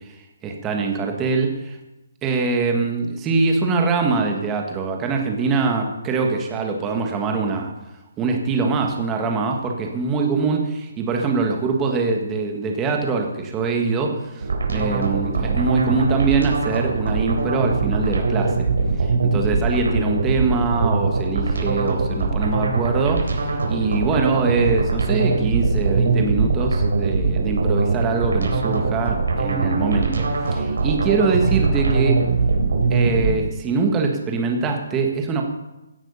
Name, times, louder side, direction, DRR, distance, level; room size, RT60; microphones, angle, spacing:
voice 1, 0.4-1.8 2.2-7.7 8.2-18.7 19.0-32.2 32.9-35.4, right 4 dB, 10° right, 2 dB, 1.6 m, -23 dB
sound 1, 14.4-33.3, right 3 dB, 80° right, 3.9 m, -22 dB
16.5 x 9.0 x 5.6 m, 0.99 s
hypercardioid pair, 170°, 0 cm